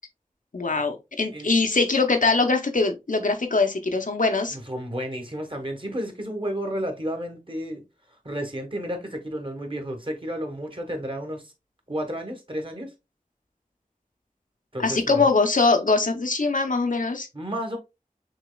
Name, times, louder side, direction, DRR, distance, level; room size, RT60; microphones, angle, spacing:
voice 1, 0.5-4.6 14.8-17.3, left 3 dB, 70° left, 0.7 m, -22 dB
voice 2, 4.5-7.8 8.2-11.5 11.9-12.9 14.7-15.3 17.3-17.8, equal, 35° right, 1.3 m, -32 dB
6.2 x 3.0 x 2.2 m
wide cardioid pair, 50°, 14 cm